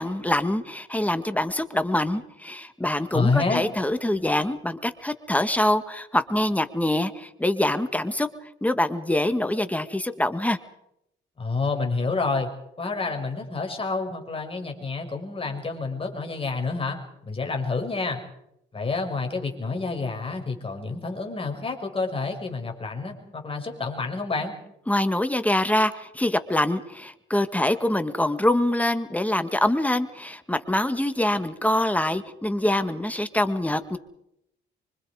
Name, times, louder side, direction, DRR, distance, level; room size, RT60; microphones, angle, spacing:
voice 1, 0.0-10.6 24.9-34.0, left 1 dB, 5° left, 10 dB, 1.8 m, -25 dB
voice 2, 3.1-3.6 11.4-12.5 12.8-17.0 17.3-18.2 18.7-24.5, left 4 dB, 30° left, 3 dB, 5.5 m, -28 dB
25.5 x 24.5 x 5.0 m, 0.80 s
cardioid pair, 90°, 20 cm